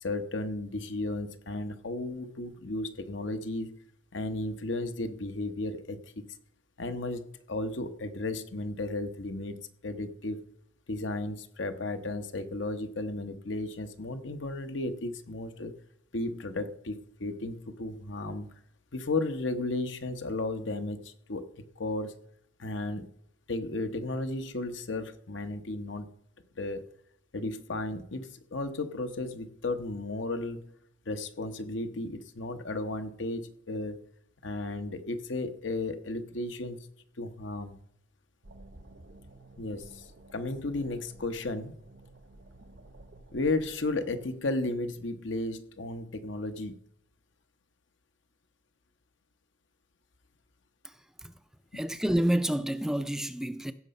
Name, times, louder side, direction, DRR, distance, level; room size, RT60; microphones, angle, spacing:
voice 1, 0.0-3.7 4.1-6.2 6.8-9.6 9.8-10.4 10.9-15.7 16.1-18.5 18.9-21.4 21.8-22.1 22.6-23.1 23.5-26.1 26.6-26.9 27.3-30.6 31.1-34.0 34.4-36.8 37.2-37.8 39.6-41.7 43.3-46.8 51.7-51.8, left 2 dB, 70° left, 1.0 m, -34 dB
sound 1, 38.4-44.3, right 2 dB, 65° right, 0.9 m, -53 dB
voice 2, 50.8-51.4 51.7-53.7, right 1 dB, 5° right, 0.4 m, -29 dB
16.0 x 6.6 x 5.3 m
head